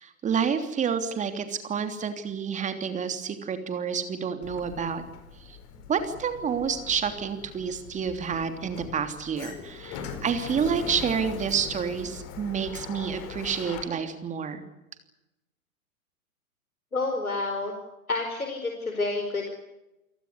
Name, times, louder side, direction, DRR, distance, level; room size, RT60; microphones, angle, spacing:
voice 1, 0.0-5.0 5.4-5.6 5.9-14.6, right 6 dB, 15° right, 8 dB, 3.1 m, -29 dB
Sliding door, 4.4-13.8, left 6 dB, 35° left, 4.8 m, -41 dB
voice 2, 16.9-17.7 18.1-19.5, left 3 dB, 80° left, 3 dB, 4.7 m, -29 dB
29.5 x 18.5 x 8.2 m, 0.94 s
figure-of-eight pair, 105°, 42 cm